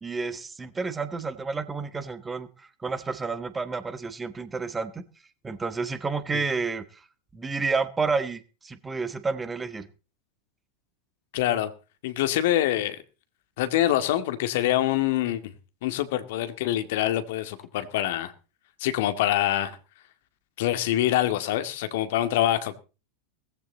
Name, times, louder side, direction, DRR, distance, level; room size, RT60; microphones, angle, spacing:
voice 1, 0.0-5.0 5.4-7.0 7.3-9.9, right 4 dB, 15° right, 13 dB, 1.5 m, -30 dB
voice 2, 11.3-11.7 12.0-13.0 13.6-15.5 15.8-18.3 18.8-19.8 20.6-22.8, left 13 dB, 55° left, 10 dB, 2.0 m, -25 dB
19.0 x 14.5 x 4.0 m, 0.34 s
figure-of-eight pair, 85°, 0 cm